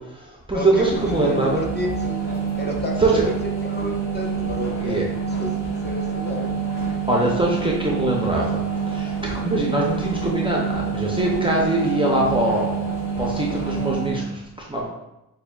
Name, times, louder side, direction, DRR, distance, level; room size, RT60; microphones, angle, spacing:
voice 1, 0.0-1.6 3.0-3.2 4.8-5.0 7.1-8.6 8.9-12.8 13.2-14.4 14.7-14.9, right 2 dB, 15° right, -3 dB, 0.5 m, -22 dB
voice 2, 0.5-2.2 2.6-3.3 3.6-6.5, left 1 dB, 30° left, -1 dB, 0.7 m, -31 dB
sound 1, 0.7-14.3, right 6 dB, 60° left, 1.5 m, -27 dB
6.6 x 2.2 x 2.3 m, 0.90 s
wide cardioid pair, 90°, 36 cm